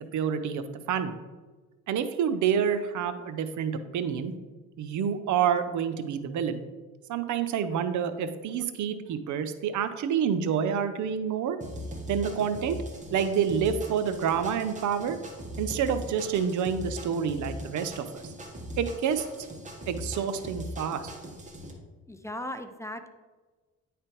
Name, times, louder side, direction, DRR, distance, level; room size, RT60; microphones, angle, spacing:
voice 1, 0.1-1.2 1.9-4.3 4.8-6.6 7.1-11.6 12.1-12.8 13.1-15.2 15.6-18.2 18.8-19.3 19.9-21.0, right 7 dB, 75° right, 10 dB, 0.7 m, -28 dB
sound 1, 11.6-21.7, equal, 25° right, 1.5 m, -40 dB
voice 2, 22.1-23.1, left 1 dB, 10° left, 7 dB, 0.5 m, -37 dB
9.6 x 3.4 x 4.5 m, 1.3 s
cardioid pair, 90°, 30 cm